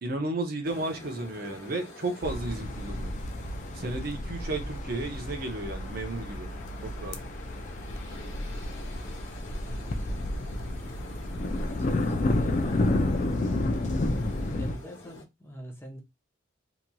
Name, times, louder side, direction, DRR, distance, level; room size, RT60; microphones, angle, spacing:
voice 1, 0.0-3.1 3.7-6.5 6.8-7.2, right 2 dB, 50° right, 0.7 m, -33 dB
sound 1, 0.6-15.2, left 2 dB, 80° left, 0.9 m, -47 dB
sound 2, 2.2-14.8, left 1 dB, 40° left, 0.4 m, -31 dB
voice 2, 9.2-10.6 11.0-12.9 13.3-13.8 14.4-16.0, right 1 dB, 10° left, 0.7 m, -46 dB
2.9 x 2.6 x 2.2 m
head